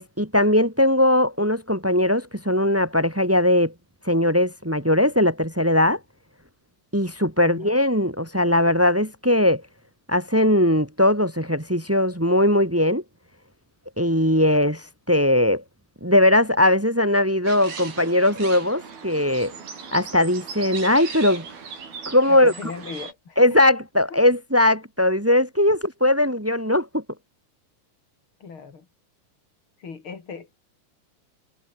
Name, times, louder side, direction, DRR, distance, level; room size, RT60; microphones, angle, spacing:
voice 1, 0.0-3.7 4.0-6.0 6.9-9.6 10.1-13.0 14.0-15.6 16.0-19.5 19.9-21.4 22.0-22.5 23.4-27.0, left 1 dB, 10° right, 0.7 m, -20 dB
sound 1, 17.4-23.1, right 6 dB, 80° right, 6.7 m, -38 dB
voice 2, 22.3-23.4 24.1-24.2 28.4-28.9 29.8-30.7, left 5 dB, 35° left, 3.9 m, -37 dB
omnidirectional pair, 4.3 m